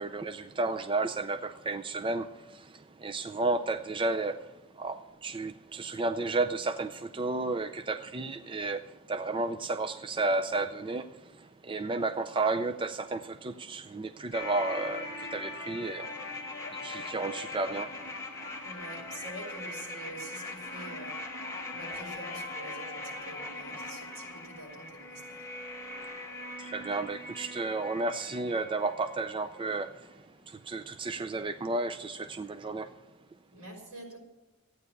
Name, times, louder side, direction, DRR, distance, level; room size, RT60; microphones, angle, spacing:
voice 1, 0.0-16.4 16.7-18.0 26.6-32.9, right 3 dB, 25° right, 0.5 m, -33 dB
sound 1, 14.3-29.3 29.6-29.7, left 2 dB, 15° left, 2.0 m, -41 dB
voice 2, 18.6-21.1 21.7-25.5 33.5-34.2, right 1 dB, 75° right, 5.7 m, -46 dB
14.5 x 9.5 x 8.1 m
head